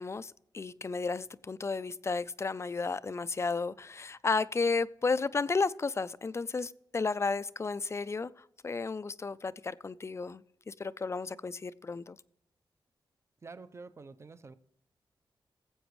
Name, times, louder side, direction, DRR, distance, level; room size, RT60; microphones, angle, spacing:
voice 1, 0.0-8.3 8.6-12.2, left 4 dB, 30° left, 0.4 m, -33 dB
voice 2, 13.4-14.5, right 4 dB, 30° right, 0.6 m, -48 dB
19.0 x 8.0 x 3.1 m
wide cardioid pair, 115°, 9 cm